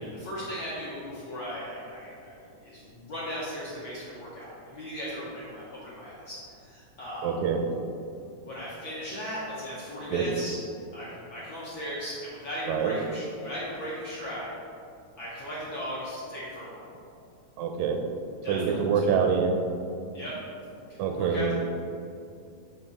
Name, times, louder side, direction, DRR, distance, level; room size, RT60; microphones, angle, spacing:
voice 1, 0.0-7.3 8.4-10.6 10.9-14.5 15.2-16.8 18.4-19.1 20.1-20.3 20.9-21.5, equal, 60° left, -8 dB, 1.4 m, -37 dB
voice 2, 7.2-7.6 10.1-10.3 12.7-13.0 17.6-18.0 18.5-19.5 21.0-21.5, right 6 dB, 80° right, 4 dB, 1.8 m, -25 dB
7.4 x 4.4 x 4.0 m, 2.5 s
omnidirectional pair, 3.5 m